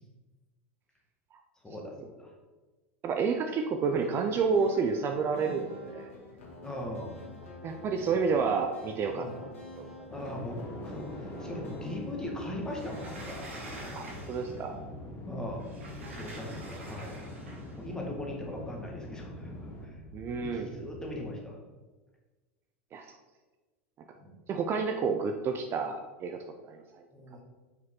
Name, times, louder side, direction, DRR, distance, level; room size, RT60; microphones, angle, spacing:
voice 1, 1.6-2.3 5.3-5.6 6.6-7.2 9.1-9.4 10.1-10.6 10.8-13.5 15.2-15.7 16.1-17.2 17.8-20.0 20.4-21.6 24.2-24.4 27.1-27.4, left 1 dB, 10° left, -1 dB, 1.6 m, -40 dB
voice 2, 3.0-6.1 7.6-9.9 13.9-14.8 20.1-20.7 22.9-23.0 24.5-26.4 26.7-27.1, right 5 dB, 35° right, 4 dB, 0.5 m, -30 dB
sound 1, 3.8-13.3, left 1 dB, 80° left, 1.5 m, -47 dB
sound 2, 10.1-21.1, left 1 dB, 35° left, 1.3 m, -44 dB
Sliding door, 12.7-14.7 15.6-17.8, right 1 dB, 85° right, 1.4 m, -46 dB
5.9 x 4.9 x 3.7 m, 1.3 s
hypercardioid pair, 90°, 7 cm